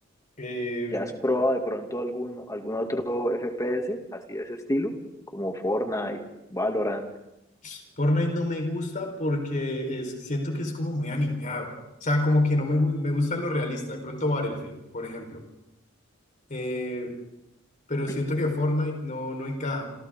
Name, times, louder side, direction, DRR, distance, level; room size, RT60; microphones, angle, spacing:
voice 1, 0.4-1.1 7.6-11.7 12.0-15.4 16.5-17.2 17.9-19.8, left 1 dB, 40° left, 3 dB, 4.5 m, -27 dB
voice 2, 0.9-4.9 5.3-6.2 6.5-7.1 18.1-18.2, left 1 dB, 15° left, 3 dB, 2.5 m, -28 dB
28.0 x 27.5 x 3.8 m, 0.89 s
head